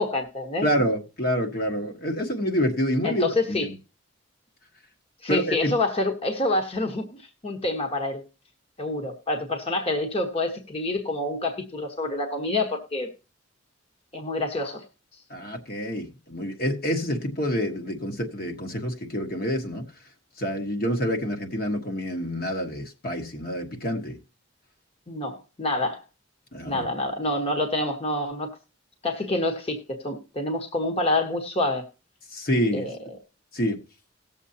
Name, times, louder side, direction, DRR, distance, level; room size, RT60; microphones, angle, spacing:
voice 1, 0.0-0.7 3.0-3.6 5.2-8.2 8.8-13.1 14.1-14.8 25.1-26.0 26.6-28.5 29.0-31.8 32.7-32.9, left 2 dB, 30° left, 1.2 m, -27 dB
voice 2, 0.6-3.7 5.3-5.7 15.3-19.9 20.4-24.2 26.5-26.9 32.3-32.9 33.5-33.8, equal, 50° left, 1.4 m, -27 dB
18.5 x 7.2 x 2.8 m
head